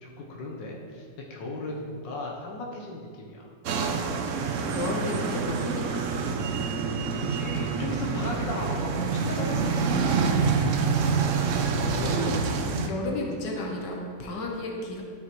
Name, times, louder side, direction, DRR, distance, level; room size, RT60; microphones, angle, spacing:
voice 1, 0.0-3.5 7.2-9.8, left 2 dB, 90° left, -2 dB, 1.6 m, -36 dB
sound 1, 3.6-12.9, right 5 dB, 65° right, 0.7 m, -27 dB
voice 2, 4.6-6.0 11.0-15.0, left 1 dB, 75° left, 0 dB, 1.7 m, -33 dB
11.5 x 5.5 x 3.1 m, 2.2 s
omnidirectional pair, 1.9 m